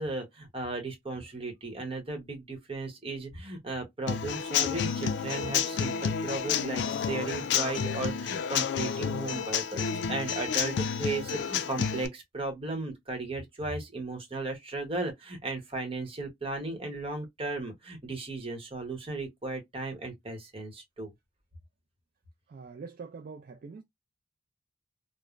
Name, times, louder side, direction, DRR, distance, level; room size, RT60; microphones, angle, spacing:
voice 1, 0.0-21.1, right 2 dB, 30° right, 0.9 m, -36 dB
Human voice / Acoustic guitar / Drum, 4.1-12.1, left 7 dB, 70° left, 0.4 m, -30 dB
voice 2, 22.5-23.8, right 5 dB, 50° right, 0.3 m, -44 dB
3.1 x 2.0 x 2.4 m
head